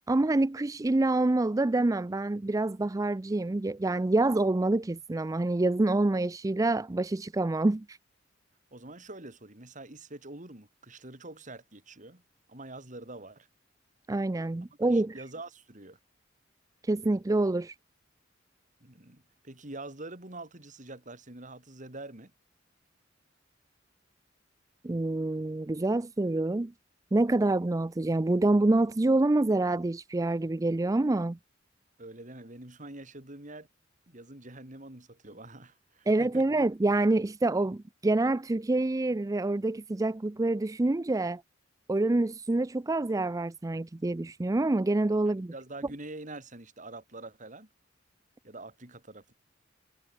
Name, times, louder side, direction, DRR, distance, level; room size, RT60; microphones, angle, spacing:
voice 1, 0.1-8.0 14.1-15.2 16.9-17.7 24.8-26.7 27.1-31.4 36.1-41.4 41.9-45.5, right 2 dB, 20° right, 0.4 m, -26 dB
voice 2, 8.7-12.2 12.5-13.5 14.9-16.0 18.8-22.3 32.0-33.7 34.1-36.6 45.3-47.7 48.4-49.3, right 2 dB, 40° right, 4.0 m, -45 dB
head